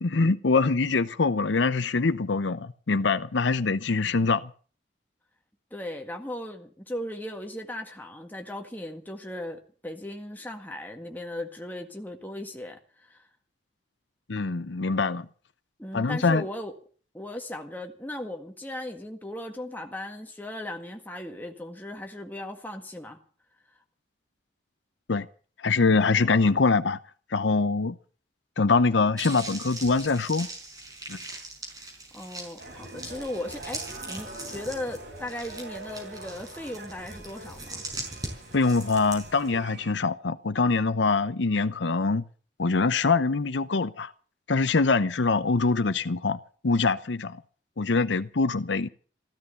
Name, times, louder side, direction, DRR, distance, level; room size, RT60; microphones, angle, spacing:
voice 1, 0.0-4.5 14.3-15.3 15.9-16.4 25.1-25.3 25.6-27.0 27.3-28.0 28.6-30.5 31.1-31.2 38.5-42.2 42.6-44.1 44.5-46.4 46.6-47.4 47.8-48.9, left 4 dB, 80° left, 0.7 m, -24 dB
voice 2, 5.7-13.2 15.8-16.7 17.1-23.2 32.1-37.9, left 1 dB, 10° left, 1.8 m, -37 dB
sound 1, 29.2-39.5, right 2 dB, 20° right, 5.2 m, -41 dB
sound 2, 32.6-39.9, right 2 dB, 60° right, 7.7 m, -44 dB
15.0 x 13.5 x 6.9 m
head